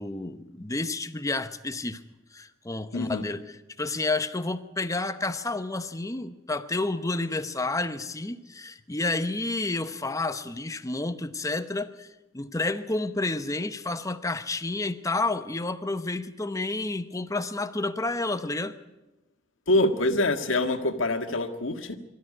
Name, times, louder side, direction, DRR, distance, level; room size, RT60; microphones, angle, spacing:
voice 1, 0.0-2.0 2.3-3.4 3.8-12.1 12.3-18.8, left 2 dB, 15° left, 0.9 m, -30 dB
voice 2, 2.9-3.2 19.7-22.0, left 1 dB, 75° left, 1.7 m, -25 dB
24.0 x 13.5 x 9.6 m
head